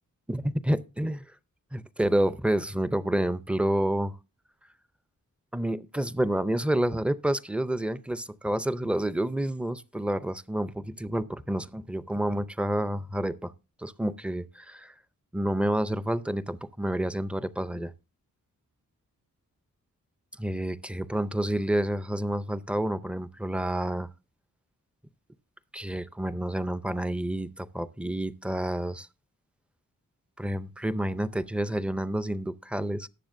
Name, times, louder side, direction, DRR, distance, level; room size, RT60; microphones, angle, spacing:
voice 1, 0.3-1.2 1.7-4.1 5.5-13.5 13.8-14.9 15.3-17.9 20.4-24.1 25.7-29.1 30.4-33.1, right 1 dB, 5° right, 0.5 m, -29 dB
19.0 x 7.0 x 2.6 m
wide cardioid pair, 110°, 33 cm